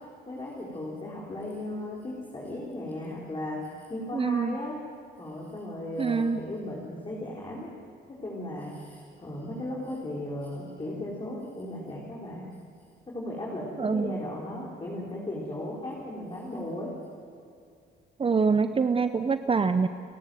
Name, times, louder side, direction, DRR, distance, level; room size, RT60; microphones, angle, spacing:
voice 1, 0.3-4.8 5.2-7.7 8.1-12.5 13.1-16.9, left 1 dB, 25° left, -4 dB, 4.5 m, -36 dB
voice 2, 4.1-4.6 6.0-6.4 13.8-14.2 18.2-19.9, right 5 dB, 30° right, 10 dB, 0.8 m, -25 dB
30.0 x 11.0 x 7.9 m, 2.4 s
cardioid pair, 90°, 20 cm